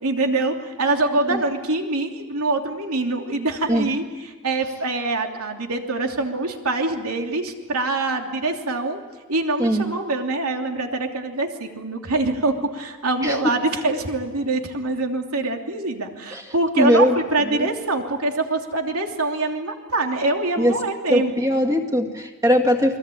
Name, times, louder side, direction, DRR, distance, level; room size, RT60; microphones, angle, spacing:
voice 1, 0.0-4.0 4.4-9.0 9.3-17.1 17.3-21.4, right 2 dB, 90° right, 3 dB, 3.0 m, -24 dB
voice 2, 16.3-17.2 17.4-17.7 20.6-20.7 21.1-23.0, equal, 15° right, 4 dB, 2.1 m, -20 dB
29.5 x 21.5 x 8.7 m, 1.3 s
head